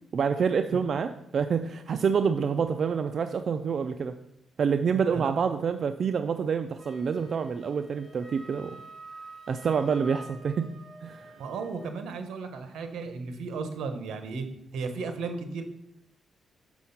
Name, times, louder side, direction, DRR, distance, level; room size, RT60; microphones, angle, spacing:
voice 1, 0.1-4.1 4.6-8.8 9.5-10.7 11.0-11.3, right 6 dB, 55° right, 8 dB, 0.4 m, -27 dB
Wind instrument woodwind instrument, 6.8-12.0, right 2 dB, 20° right, 2.1 m, -48 dB
voice 2, 11.4-15.6, right 4 dB, 85° right, 7 dB, 1.1 m, -35 dB
6.5 x 6.2 x 5.7 m, 0.78 s
cardioid pair, 105°, 0 cm